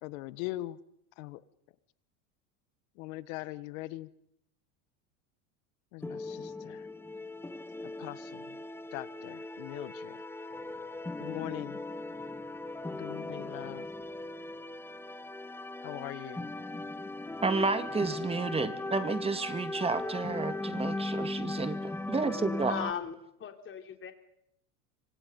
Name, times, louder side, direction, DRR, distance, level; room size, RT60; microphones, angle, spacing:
voice 1, 0.0-0.8 1.2-1.4 2.9-4.1 5.9-6.9 8.0-8.6 8.9-10.2 11.2-11.8 12.9-13.8 15.8-16.5, left 18 dB, 70° left, 15 dB, 1.7 m, -41 dB
sound 1, 6.0-22.9, left 2 dB, 5° left, 1.0 m, -38 dB
voice 2, 17.4-22.8, right 4 dB, 15° right, 11 dB, 2.0 m, -31 dB
voice 3, 22.6-23.1 23.4-24.1, left 7 dB, 30° left, 6 dB, 3.5 m, -38 dB
26.5 x 25.5 x 5.5 m, 0.76 s
supercardioid pair, 125°, 41 cm